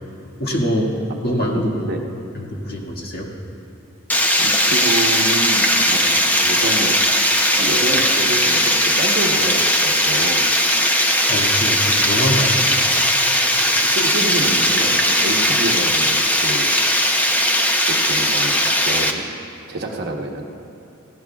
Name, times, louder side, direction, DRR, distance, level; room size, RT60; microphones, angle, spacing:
voice 1, 0.4-1.0 1.2-2.1 2.3-3.3 11.3-12.5, equal, 50° left, -2 dB, 1.9 m, -23 dB
voice 2, 1.5-2.0 4.4-6.9 7.5-10.5 13.8-16.7 17.9-19.2 19.7-20.4, right 2 dB, 50° right, 1 dB, 1.1 m, -27 dB
Water, 4.1-19.1, equal, 10° left, 0.6 m, -18 dB
18.5 x 16.5 x 2.4 m, 2.9 s
head